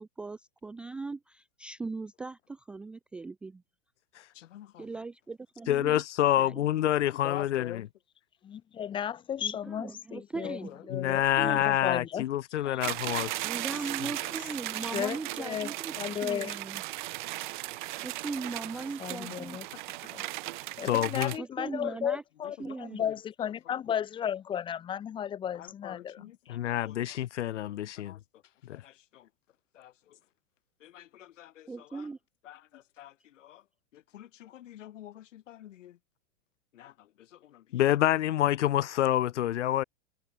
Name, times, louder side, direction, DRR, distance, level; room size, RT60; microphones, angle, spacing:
voice 1, 0.0-3.6 4.8-6.0 6.4-6.7 9.4-10.8 11.1-11.7 13.4-16.8 18.0-19.6 21.4-22.2 22.6-23.0 31.7-32.2, right 3 dB, 5° right, 0.6 m, -39 dB
voice 2, 4.3-4.8 7.2-7.8 12.7-12.8 14.2-14.3 21.8-22.0 22.6-23.0 25.6-26.4 26.6-26.9 28.0-28.2 28.7-29.3 29.7-29.9 30.8-32.0 32.4-33.6 33.9-36.0 36.7-36.9 37.4-37.6, left 12 dB, 85° left, 1.4 m, -46 dB
voice 3, 5.7-7.9 10.9-13.4 19.2-19.3 20.9-21.3 26.5-28.1 28.6-28.8 37.7-39.8, left 12 dB, 70° left, 1.5 m, -27 dB
voice 4, 8.4-10.6 10.9-12.2 12.6-12.8 14.8-16.6 19.0-19.7 20.1-20.2 20.8-26.6, left 9 dB, 15° left, 3.6 m, -34 dB
sound 1, 12.8-21.4, right 19 dB, 40° right, 3.6 m, -37 dB
supercardioid pair, 175°, 37 cm